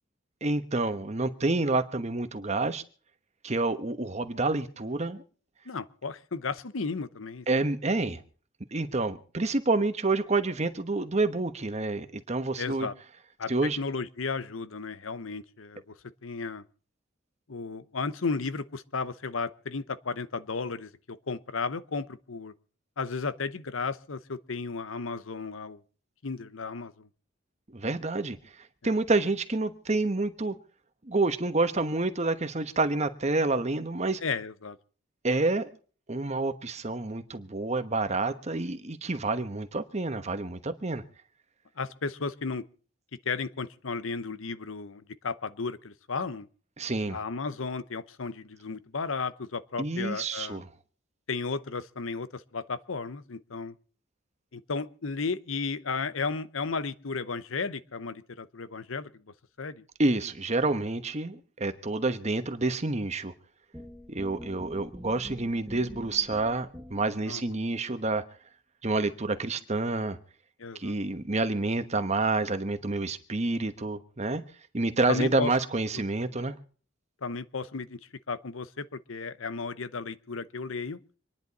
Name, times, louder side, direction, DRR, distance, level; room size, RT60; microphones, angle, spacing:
voice 1, 0.4-2.8 3.4-5.2 7.5-8.2 8.7-12.9 13.5-13.8 27.7-28.4 28.8-30.6 31.1-34.2 35.2-35.7 36.1-41.0 46.8-47.2 49.8-50.6 60.0-63.3 64.1-68.2 68.8-70.2 70.8-74.4 74.7-76.5, right 2 dB, 35° right, 1.1 m, -28 dB
voice 2, 5.7-7.5 12.6-12.9 13.4-13.5 13.8-15.9 16.2-16.6 17.5-22.5 23.0-25.8 26.2-27.1 28.8-28.9 34.2-34.8 41.8-42.6 43.2-46.5 47.1-50.6 51.3-53.7 54.5-59.1 59.6-59.8 67.3-67.4 70.6-71.0 75.1-75.5 77.2-78.0 78.3-81.0, left 4 dB, 85° left, 0.9 m, -34 dB
sound 1, 63.7-67.3, equal, 10° right, 1.4 m, -46 dB
26.5 x 10.5 x 4.1 m
head